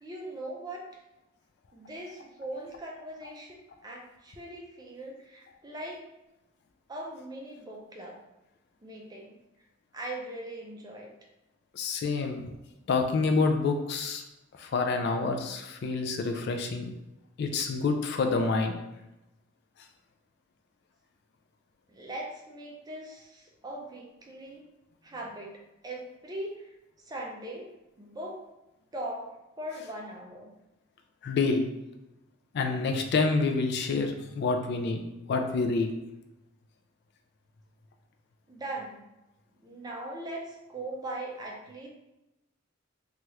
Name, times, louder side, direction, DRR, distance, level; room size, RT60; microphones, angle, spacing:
voice 1, 0.0-0.8 1.7-6.0 6.9-8.2 8.8-9.4 9.9-11.1 21.9-24.7 25.0-25.5 25.8-26.8 27.1-27.7 28.0-28.4 28.9-29.3 29.6-30.5 38.5-39.0 39.6-41.9, right 1 dB, 20° right, -1 dB, 0.4 m, -40 dB
voice 2, 11.7-12.4 12.9-14.2 14.6-16.9 17.4-18.8 31.2-31.6 32.5-35.0 35.3-35.9, left 4 dB, 55° left, 5 dB, 0.3 m, -27 dB
2.8 x 2.3 x 3.1 m, 0.95 s
head